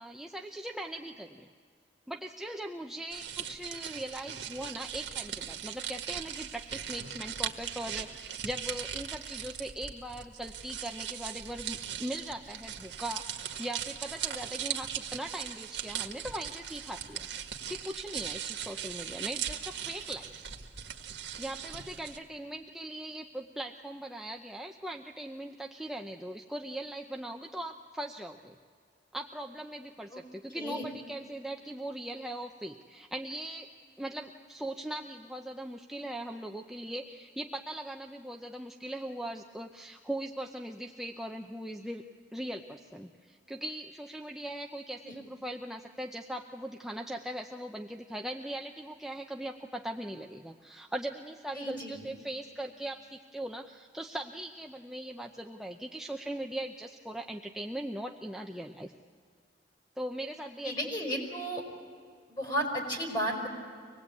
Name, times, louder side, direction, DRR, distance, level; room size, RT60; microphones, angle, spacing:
voice 1, 0.0-1.5 2.1-17.3 17.7-20.3 21.4-28.6 29.1-33.7 34.0-42.0 42.3-58.9 60.0-60.7, right 1 dB, 5° right, 2 dB, 0.6 m, -40 dB
sound 1, 3.1-22.2, right 9 dB, 75° right, 1.7 m, -39 dB
voice 2, 51.6-52.1 60.6-61.6 62.3-63.5, equal, 25° left, 0 dB, 5.3 m, -33 dB
25.0 x 19.5 x 8.4 m, 2.1 s
head